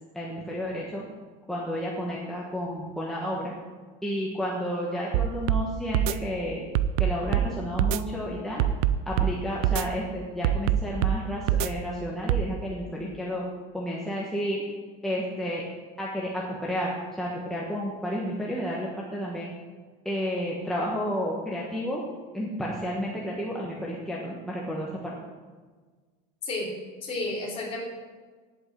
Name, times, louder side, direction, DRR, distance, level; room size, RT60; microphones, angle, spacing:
voice 1, 0.1-1.0 1.5-3.5 4.0-6.6 7.0-8.6 9.1-13.4 13.7-14.6 15.0-15.6 16.0-19.5 20.0-22.0 22.3-25.1, equal, ahead, -4 dB, 1.2 m, -31 dB
sound 1, 5.1-5.6 5.9-6.1 6.7-7.5 7.8-8.0 8.6-9.3 9.6-9.8 10.4-11.2 11.5-11.7 12.3-12.4, right 10 dB, 70° right, 0.6 m, -23 dB
voice 2, 26.4-26.7 27.0-27.8, left 2 dB, 30° left, -2 dB, 3.1 m, -31 dB
9.2 x 8.3 x 7.4 m, 1.4 s
cardioid pair, 170°, 20 cm